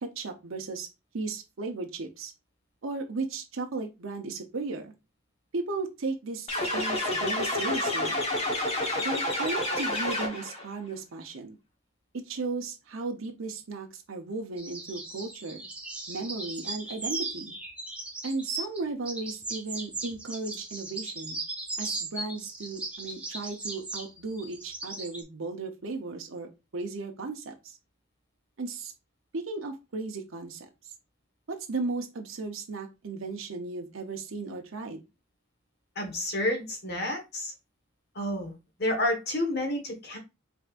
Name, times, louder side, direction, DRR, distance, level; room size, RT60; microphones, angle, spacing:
voice 1, 0.0-0.9 1.1-2.3 2.8-4.9 5.5-6.5 6.7-8.2 9.0-11.6 12.1-15.7 16.1-17.5 18.2-21.4 21.8-27.8 28.6-28.9 29.3-30.7 31.5-35.0, right 3 dB, 75° right, 3 dB, 0.7 m, -35 dB
sound 1, 6.5-10.6, left 1 dB, 30° left, 1.1 m, -29 dB
sound 2, 14.6-18.8 19.1-25.2, right 3 dB, 5° right, 0.8 m, -37 dB
voice 2, 35.9-37.5 38.1-40.2, left 1 dB, 50° left, 3 dB, 1.3 m, -30 dB
4.8 x 3.5 x 2.4 m, 0.25 s
head